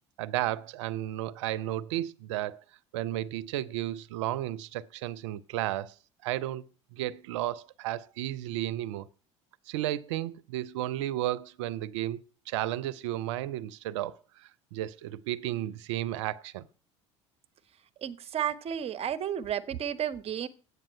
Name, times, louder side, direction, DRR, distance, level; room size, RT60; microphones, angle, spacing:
voice 1, 0.2-2.6 2.9-5.9 6.2-6.7 6.9-9.1 9.7-16.7, right 14 dB, 75° right, 0.6 m, -33 dB
voice 2, 18.0-20.5, right 9 dB, 40° right, 0.9 m, -32 dB
8.8 x 8.2 x 5.5 m
hypercardioid pair, 75°, 15 cm